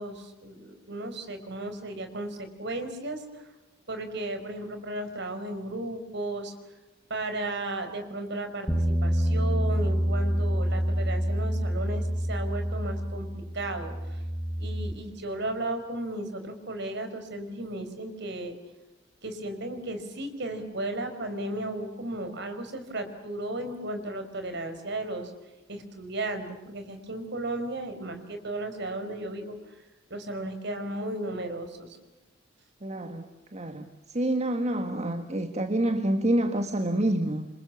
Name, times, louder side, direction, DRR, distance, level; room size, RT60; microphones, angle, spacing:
voice 1, 0.0-3.5 3.9-6.5 7.1-14.2 14.6-18.6 19.2-25.3 25.7-29.7 30.1-32.0, right 1 dB, 60° right, 7 dB, 5.2 m, -35 dB
Bass guitar, 8.7-14.9, equal, 5° left, 3.3 m, -27 dB
voice 2, 32.8-33.9 34.1-37.5, right 1 dB, 35° right, 6 dB, 1.6 m, -27 dB
29.0 x 26.0 x 7.1 m, 1.0 s
head